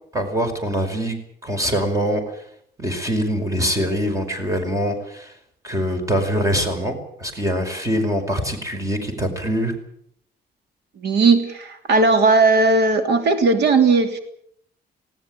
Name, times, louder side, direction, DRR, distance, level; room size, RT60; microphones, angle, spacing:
voice 1, 0.1-1.1 1.4-2.3 2.8-5.3 5.6-9.7, equal, 20° right, 6 dB, 5.1 m, -23 dB
voice 2, 11.0-14.2, right 3 dB, 85° right, 7 dB, 3.0 m, -17 dB
19.5 x 18.5 x 9.0 m, 0.69 s
cardioid pair, 145°, 17 cm